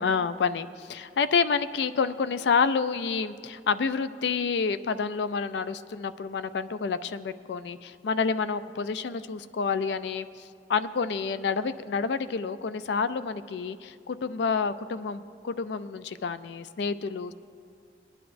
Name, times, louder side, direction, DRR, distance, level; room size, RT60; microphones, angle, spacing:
voice 1, 0.0-17.3, left 5 dB, 75° left, 13 dB, 0.4 m, -29 dB
20.5 x 9.9 x 2.6 m, 2.2 s
head